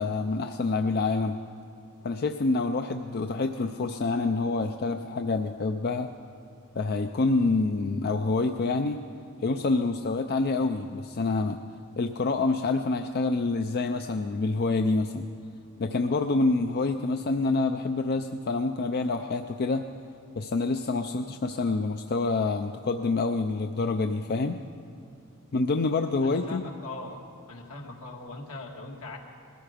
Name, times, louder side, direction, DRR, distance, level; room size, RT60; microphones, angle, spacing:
voice 1, 0.0-1.4 2.0-6.1 6.7-9.0 9.4-11.6 12.0-15.3 15.8-19.8 20.4-24.6 25.5-26.6, left 3 dB, 45° left, 6 dB, 0.5 m, -27 dB
voice 2, 26.2-27.2 27.5-29.2, left 2 dB, 80° left, 0 dB, 2.0 m, -40 dB
20.5 x 14.0 x 5.1 m, 2.5 s
head